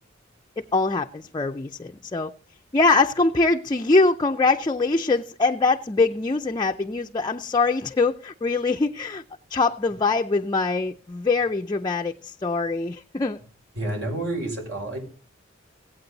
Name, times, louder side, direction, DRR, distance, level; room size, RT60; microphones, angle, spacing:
voice 1, 0.6-2.3 2.7-9.2 9.5-13.4, left 3 dB, 20° left, 3 dB, 0.5 m, -23 dB
voice 2, 13.7-15.0, right 2 dB, 70° right, 0 dB, 6.1 m, -29 dB
17.5 x 8.7 x 4.0 m, 0.41 s
head